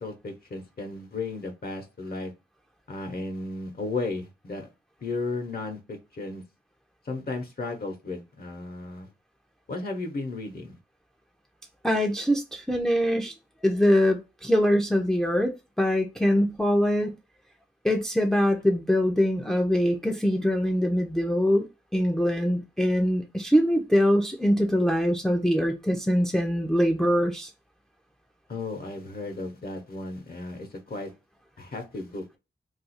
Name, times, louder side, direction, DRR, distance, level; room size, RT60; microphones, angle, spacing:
voice 1, 0.0-2.3 2.9-4.7 5.0-6.4 7.0-9.1 9.7-10.8 28.5-31.1 31.6-32.2, left 3 dB, 55° left, 0.8 m, -34 dB
voice 2, 11.8-13.3 13.6-17.2 17.8-21.7 21.9-27.5, equal, 5° left, 0.5 m, -23 dB
2.4 x 2.3 x 4.0 m
wide cardioid pair, 105°, 19 cm